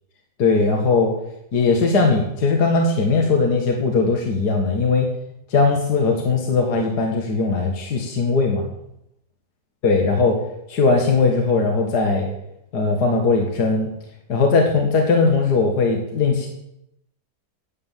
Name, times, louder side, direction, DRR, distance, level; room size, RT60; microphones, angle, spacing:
voice 1, 0.4-1.1 1.5-5.1 5.5-8.6 9.8-10.3 10.7-12.3 12.7-13.9 14.3-16.5, left 4 dB, 65° left, 1 dB, 2.2 m, -19 dB
9.7 x 9.4 x 7.5 m, 0.80 s
omnidirectional pair, 1.9 m